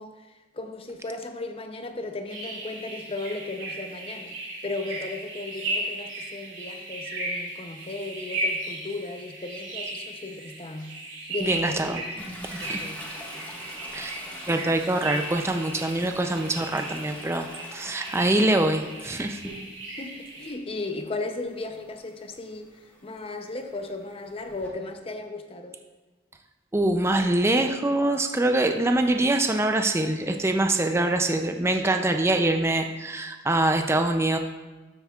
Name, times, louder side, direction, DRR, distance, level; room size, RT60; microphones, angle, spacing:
voice 1, 0.0-4.4 4.6-11.0 11.3-11.9 12.6-13.1 14.5-14.7 20.0-22.7 23.0-25.8, left 2 dB, 30° left, 6 dB, 0.6 m, -36 dB
sound 1, 2.3-20.5, right 2 dB, 80° right, 2.5 m, -36 dB
voice 2, 11.4-12.0 12.5-12.9 13.9-14.2 14.5-17.5 17.7-19.4 26.7-34.4, right 2 dB, 15° right, 5 dB, 0.4 m, -24 dB
Toilet flush, 12.2-20.0 20.4-24.7, left 1 dB, 10° left, 1.4 m, -44 dB
13.0 x 8.0 x 2.4 m, 1.3 s
head